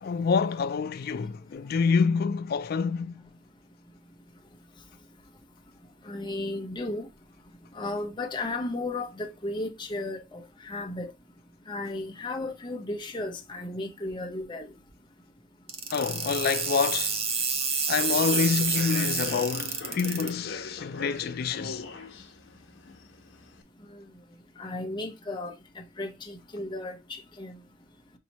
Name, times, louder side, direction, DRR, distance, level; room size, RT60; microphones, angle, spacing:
voice 1, 0.0-3.2 15.9-17.2 17.9-21.8, left 5 dB, 50° left, 0.3 m, -27 dB
voice 2, 6.1-7.1 7.7-11.1 11.7-14.7 24.6-25.5 26.0-27.6, left 2 dB, 25° left, 0.8 m, -34 dB
sound 1, 15.7-20.3, right 5 dB, 30° right, 0.7 m, -29 dB
Human voice / Subway metro underground, 18.1-23.6, left 4 dB, 70° left, 0.9 m, -41 dB
5.7 x 2.7 x 2.9 m
head